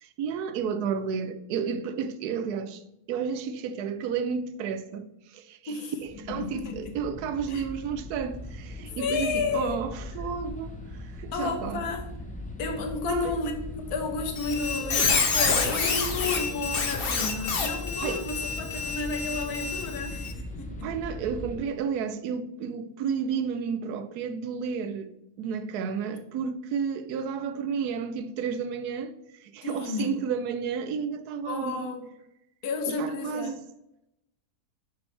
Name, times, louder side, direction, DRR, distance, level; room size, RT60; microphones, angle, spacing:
voice 1, 0.0-2.8 3.1-11.8 13.1-13.4 17.4-17.5 18.0-18.2 20.8-25.1 25.4-29.1 29.4-31.9 32.9-33.6, right 6 dB, 80° right, 1.1 m, -32 dB
sound 1, 6.0-21.6, left 1 dB, 10° left, 0.6 m, -39 dB
voice 2, 6.3-6.9 7.5-7.6 8.8-9.8 11.3-12.1 12.6-20.9 29.6-30.2 31.4-32.1 32.6-33.5, left 4 dB, 75° left, 1.4 m, -32 dB
Squeak, 14.4-20.3, left 4 dB, 45° left, 0.9 m, -28 dB
6.2 x 5.9 x 3.2 m
omnidirectional pair, 1.7 m